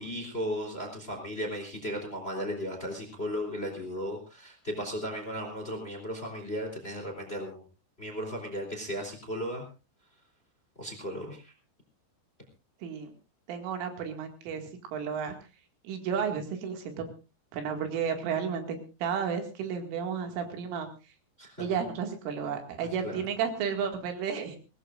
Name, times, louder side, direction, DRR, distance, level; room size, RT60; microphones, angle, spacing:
voice 1, 0.0-7.6 8.0-9.6 10.8-11.5 21.4-21.5 23.0-23.2, equal, 15° left, 4 dB, 2.9 m, -35 dB
voice 2, 12.8-13.1 13.5-15.3 15.8-17.1 17.5-20.9 21.6-24.6, right 7 dB, 80° right, 4 dB, 4.6 m, -32 dB
23.5 x 18.0 x 2.5 m, 0.31 s
omnidirectional pair, 5.7 m